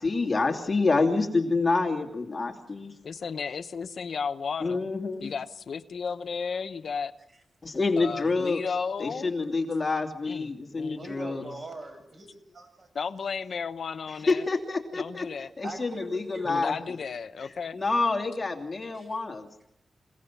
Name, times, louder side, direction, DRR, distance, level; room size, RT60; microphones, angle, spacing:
voice 1, 0.0-2.9 4.6-5.3 7.6-8.6 9.0-11.4 14.3-15.3 15.6-17.0 17.7-19.5, left 3 dB, 30° left, 3 dB, 2.7 m, -27 dB
voice 2, 3.0-4.9 5.2-7.1 8.0-9.6 10.2-11.0 11.3-11.6 12.9-14.4 15.0-15.5 16.4-17.8, left 5 dB, 65° left, 10 dB, 0.9 m, -34 dB
voice 3, 10.8-12.9 15.6-16.9 18.9-19.1, right 2 dB, 45° right, 6 dB, 7.1 m, -42 dB
28.5 x 17.5 x 7.2 m, 0.85 s
wide cardioid pair, 125°, 0 cm